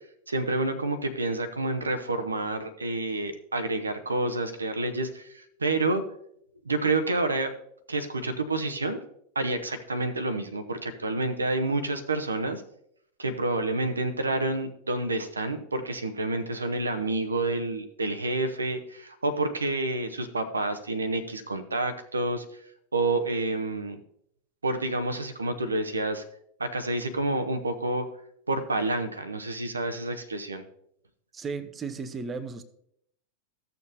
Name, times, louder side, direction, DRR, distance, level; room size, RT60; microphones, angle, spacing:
voice 1, 0.3-6.0 6.6-7.5 7.9-9.0 9.3-12.6 13.2-22.4 22.9-24.0 24.6-26.2 26.6-28.0 28.5-30.6, right 2 dB, 75° right, 0.8 m, -29 dB
voice 2, 31.3-32.6, right 4 dB, 20° right, 0.7 m, -35 dB
14.5 x 6.8 x 2.7 m
figure-of-eight pair, 90°, 0 cm